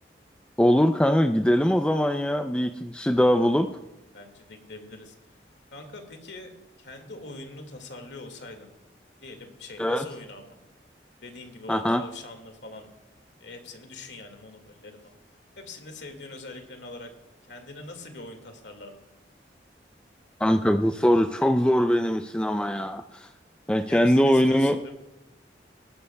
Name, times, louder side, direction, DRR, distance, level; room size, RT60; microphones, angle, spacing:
voice 1, 0.6-3.7 9.8-10.0 11.7-12.0 20.4-23.3 23.7-24.8, equal, 5° left, 7 dB, 0.4 m, -22 dB
voice 2, 4.1-5.2 5.7-6.5 6.8-8.7 9.2-10.6 11.2-12.9 13.4-15.2 15.6-17.1 17.4-19.0 23.9-24.9, left 2 dB, 90° left, 5 dB, 2.0 m, -43 dB
19.5 x 12.5 x 2.3 m, 1.0 s
head